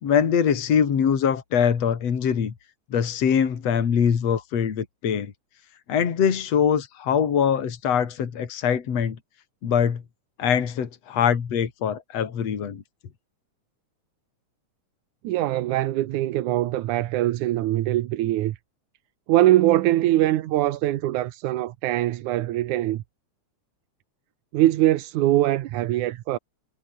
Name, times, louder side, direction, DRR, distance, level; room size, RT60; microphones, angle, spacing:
voice 1, 0.0-2.5 2.9-5.3 5.9-9.2 9.6-10.0 10.4-12.8, left 7 dB, 60° left, 3.6 m, -23 dB
voice 2, 15.2-18.6 19.3-23.0 24.5-26.4, right 15 dB, 90° right, 2.4 m, -22 dB
omnidirectional pair, 3.4 m